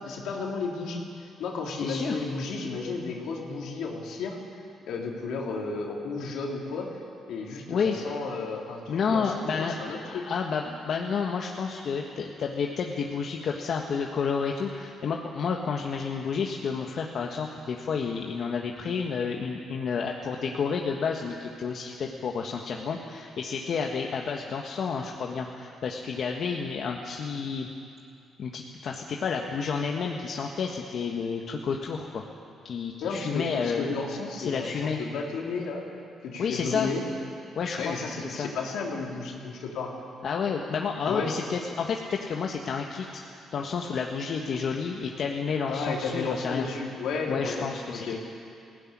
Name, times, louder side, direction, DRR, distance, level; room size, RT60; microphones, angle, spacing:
voice 1, 0.0-4.4 4.9-7.0 7.3-10.2 33.0-35.9 36.2-37.0 37.8-39.9 41.1-41.4 45.7-48.2, left 4 dB, 80° left, 0 dB, 3.5 m, -33 dB
voice 2, 1.8-2.2 7.7-7.9 8.9-9.7 10.1-27.7 28.4-32.2 32.6-33.9 34.4-35.0 36.4-36.9 37.5-38.5 40.2-46.7 47.3-48.2, left 5 dB, 60° left, 1 dB, 1.5 m, -30 dB
20.0 x 16.5 x 10.0 m, 2.5 s
cardioid pair, 90°, 0 cm